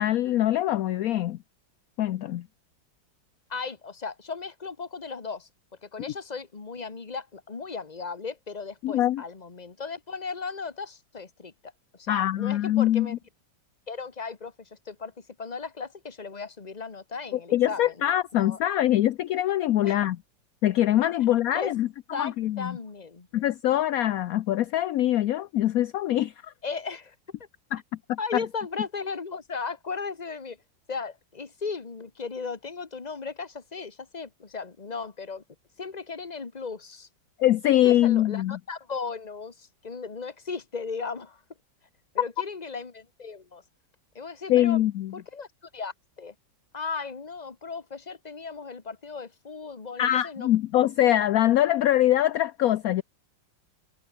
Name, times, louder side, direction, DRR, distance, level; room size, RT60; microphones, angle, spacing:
voice 1, 0.0-1.4 2.0-2.5 8.8-9.2 12.1-13.2 17.3-20.2 20.6-21.9 22.1-22.8 23.3-26.5 27.7-27.8 28.1-28.4 37.4-38.6 44.5-45.1 50.0-53.0, left 13 dB, 70° left, 0.9 m, -23 dB
voice 2, 3.5-5.5 5.8-13.1 13.9-18.0 18.4-18.6 19.8-20.0 21.5-21.7 22.1-23.3 26.6-27.1 28.2-30.6 30.9-35.4 35.8-37.1 37.8-41.4 42.1-43.6 44.1-44.8 45.1-45.5 45.7-46.3 46.7-50.5, left 4 dB, 25° left, 1.5 m, -36 dB
omnidirectional pair, 2.1 m